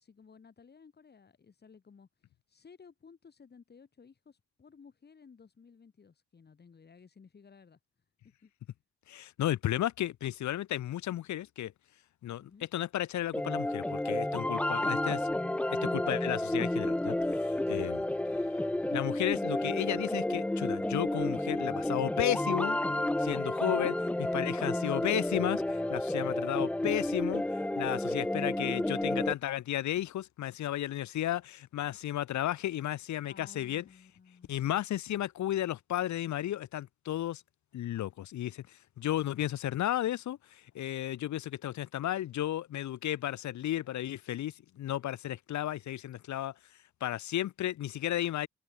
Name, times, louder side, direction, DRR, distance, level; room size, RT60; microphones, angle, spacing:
voice 1, 0.0-2.1 2.5-7.8 8.4-8.5 12.4-12.7 14.5-15.0 17.7-18.3 33.3-34.8, left 5 dB, 35° left, 6.6 m, -56 dB
voice 2, 9.1-11.7 12.2-15.2 15.7-18.0 18.9-22.8 23.2-33.8 34.5-37.4 37.7-46.5 47.0-48.5, left 12 dB, 70° left, 0.8 m, -33 dB
sound 1, 13.3-29.3, left 1 dB, 5° left, 0.4 m, -31 dB
wide cardioid pair, 170°, 30 cm